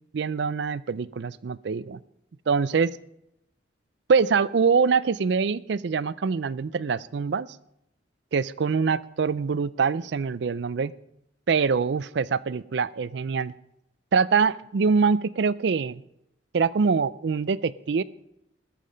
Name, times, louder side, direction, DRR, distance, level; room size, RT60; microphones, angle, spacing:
voice 1, 0.1-2.0 2.5-3.0 4.1-7.5 8.3-10.9 11.5-13.5 14.1-16.0 16.5-18.0, right 5 dB, 65° right, 18 dB, 0.4 m, -24 dB
20.0 x 7.5 x 5.1 m, 0.81 s
head